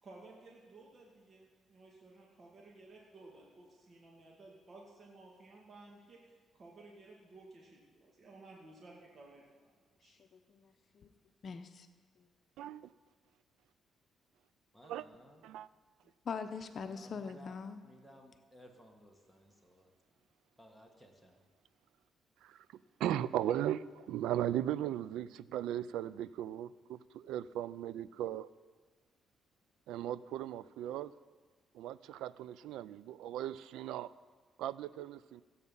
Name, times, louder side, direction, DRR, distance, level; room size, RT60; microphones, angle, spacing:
voice 1, 0.0-9.7 10.0-10.2, right 2 dB, 45° right, -2 dB, 2.0 m, -56 dB
voice 2, 10.0-11.1 11.4-11.9 12.2-12.3 16.2-17.8, left 5 dB, 50° left, 8 dB, 0.7 m, -43 dB
voice 3, 12.6-12.9 14.9-15.0 15.5-15.7 22.4-22.7 23.0-28.5 29.9-31.1 31.7-34.1 34.6-35.4, right 11 dB, 90° right, 18 dB, 0.3 m, -37 dB
voice 4, 14.7-15.4 16.9-17.6 17.8-19.9 20.6-21.4, equal, 5° right, 3 dB, 1.6 m, -59 dB
15.5 x 8.4 x 5.4 m, 1.4 s
cardioid pair, 90°, 0 cm